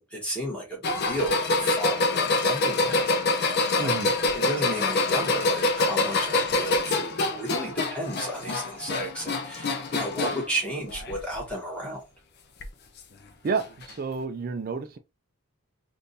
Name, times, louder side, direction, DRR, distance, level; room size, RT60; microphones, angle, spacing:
voice 1, 0.0-4.0 4.3-12.0, right 1 dB, 5° left, 1.4 m, -33 dB
sound 1, 0.8-10.5 10.9-11.5 12.6-12.7 13.8-13.9, left 2 dB, 45° left, 0.5 m, -26 dB
voice 2, 3.8-4.2 13.4-15.0, right 4 dB, 40° right, 0.3 m, -30 dB
3.6 x 2.5 x 2.6 m
head